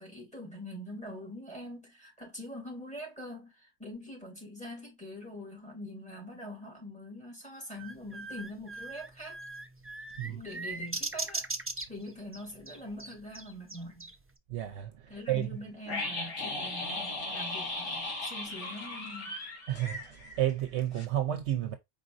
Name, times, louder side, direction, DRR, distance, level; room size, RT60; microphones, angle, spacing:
voice 1, 0.0-9.4 10.2-11.5 11.9-14.1 15.1-19.4, left 1 dB, 5° left, 3.3 m, -44 dB
sound 1, 7.8-14.3, right 2 dB, 20° right, 0.4 m, -39 dB
voice 2, 14.5-15.5 19.7-21.8, right 12 dB, 70° right, 0.9 m, -31 dB
sound 2, 15.9-20.7 20.9-21.1, left 2 dB, 70° left, 1.9 m, -37 dB
4.9 x 3.9 x 2.5 m
omnidirectional pair, 1.3 m